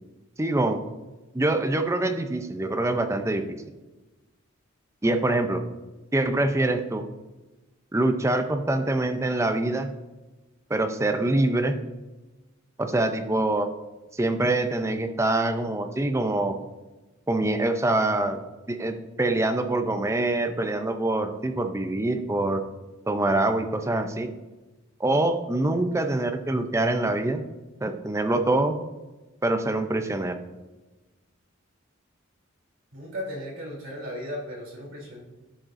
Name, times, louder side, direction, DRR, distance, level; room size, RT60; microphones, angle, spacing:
voice 1, 0.4-0.8 1.3-3.6 5.0-5.6 6.1-7.0 7.9-9.9 10.7-11.8 12.8-13.7 14.1-16.6 17.3-18.4 18.7-22.6 23.1-24.3 25.0-27.4 27.8-28.7 29.4-30.4, right 2 dB, 15° right, 7 dB, 0.5 m, -25 dB
voice 2, 32.9-35.2, equal, 70° right, -4 dB, 3.1 m, -36 dB
11.5 x 7.5 x 2.6 m, 1.1 s
head